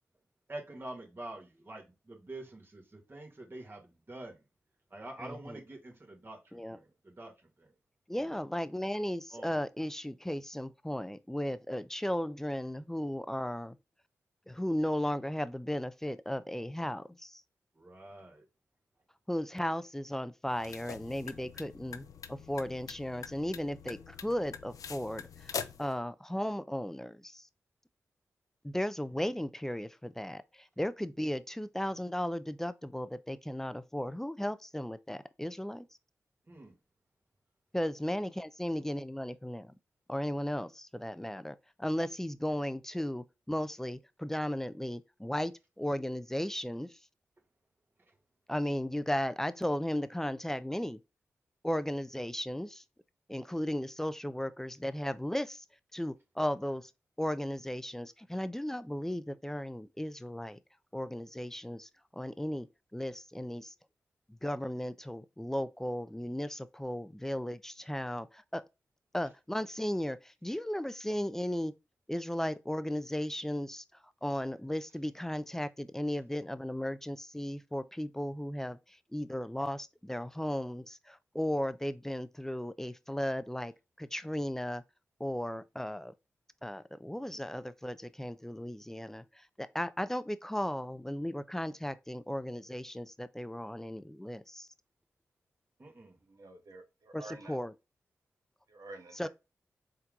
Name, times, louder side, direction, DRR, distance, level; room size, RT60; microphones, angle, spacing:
voice 1, 0.5-4.4 4.9-6.8 7.2-7.3 8.3-8.4 9.3-9.6 17.8-18.4 36.5-36.7 95.8-96.1, right 2 dB, 40° right, 2.1 m, -46 dB
voice 2, 5.2-5.6 6.5-6.8 8.1-13.8 14.5-17.4 19.3-27.4 28.6-30.4 30.8-35.8 37.7-39.7 40.1-45.5 45.8-46.9 48.5-51.0 51.6-52.8 53.3-55.6 55.9-56.9 57.2-60.6 60.9-62.7 62.9-63.7 64.4-68.6 69.1-71.7 72.1-73.8 74.2-78.8 79.1-83.7 84.0-84.8 85.2-86.1 86.6-89.2 89.6-94.7 97.1-97.2 97.5-97.7 99.2-99.3, left 1 dB, 5° left, 0.5 m, -35 dB
sound 1, 20.5-25.9, left 7 dB, 75° left, 0.4 m, -44 dB
voice 3, 96.3-97.6 98.7-99.3, right 2 dB, 65° right, 1.3 m, -49 dB
4.4 x 3.8 x 2.4 m
supercardioid pair, 40°, 6 cm